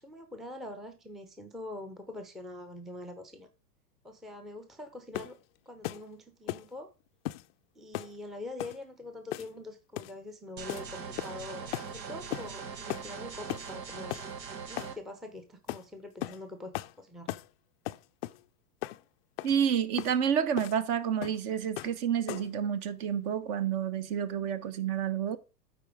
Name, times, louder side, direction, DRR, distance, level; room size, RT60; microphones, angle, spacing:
voice 1, 0.0-3.5 4.0-5.3 5.7-6.9 7.8-14.2 14.7-17.3, left 2 dB, ahead, 0.6 m, -44 dB
sound 1, 5.1-5.4 5.8-6.1 6.5-6.7 7.3-7.5 7.9-8.2 8.6-8.8 9.3-9.6 10.0-10.2 10.7-10.9 11.2-11.4 11.7-11.9 12.3-12.5 12.9-13.1 13.5-13.7 14.1-14.3 14.8-15.0 15.7-15.8 16.2-16.4 16.7-16.9 17.3-17.5 17.9-18.4 18.8-19.0 19.4-19.6 20.0-20.2 20.6-20.8 21.2-21.4 21.8-22.0 22.3-22.6, left 18 dB, 40° left, 0.4 m, -37 dB
sound 2, 10.6-15.0, right 6 dB, 85° right, 1.3 m, -41 dB
voice 2, 19.4-25.4, right 8 dB, 40° right, 1.0 m, -29 dB
9.2 x 4.3 x 4.8 m
hypercardioid pair, 105°, 49 cm